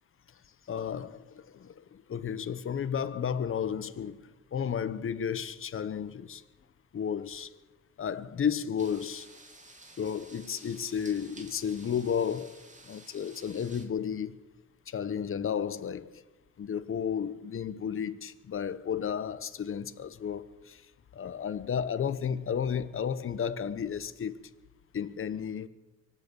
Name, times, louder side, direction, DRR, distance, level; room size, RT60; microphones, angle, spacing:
voice 1, 0.7-6.4 6.9-7.5 8.0-9.3 10.0-12.6 12.9-14.4 14.9-16.2 16.6-20.8 21.1-24.4 24.9-25.7, left 7 dB, 45° left, 1.1 m, -33 dB
sound 1, 8.8-13.9, right 2 dB, 25° right, 2.7 m, -53 dB
24.0 x 8.3 x 7.0 m
cardioid pair, 90°, 30 cm